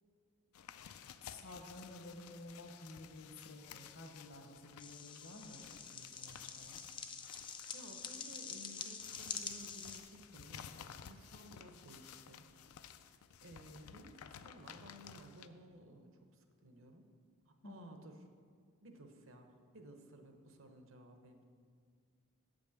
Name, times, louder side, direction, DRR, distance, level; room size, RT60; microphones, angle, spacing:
sound 1, 0.5-15.5, left 8 dB, 90° left, 0.4 m, -55 dB
voice 1, 1.2-6.8 17.6-18.0, left 2 dB, 65° left, 3 dB, 1.1 m, -52 dB
sound 2, 4.8-10.0, left 6 dB, 20° left, 0.4 m, -46 dB
voice 2, 7.7-12.5 12.9-17.1 17.5-18.3 18.8-21.4, right 1 dB, 65° right, 5 dB, 0.9 m, -56 dB
8.8 x 5.2 x 7.1 m, 2.1 s
head